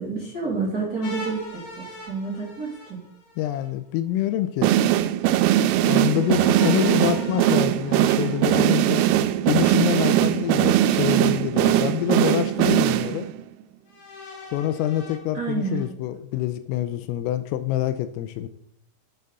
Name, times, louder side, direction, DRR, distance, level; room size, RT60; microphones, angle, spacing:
voice 1, 0.0-3.0 15.3-15.8, right 4 dB, 25° right, -5 dB, 2.5 m, -29 dB
sound 1, 1.0-3.7 6.1-9.1 10.4-11.4 12.1-12.2 13.9-15.9, left 1 dB, 55° left, 4.4 m, -42 dB
voice 2, 3.4-4.7 5.9-9.0 9.5-13.3 14.5-18.5, left 12 dB, 85° left, 10 dB, 3.3 m, -26 dB
sound 2, 4.6-13.4, right 12 dB, 90° right, 3.3 m, -20 dB
10.5 x 9.0 x 4.1 m, 0.69 s
omnidirectional pair, 6.0 m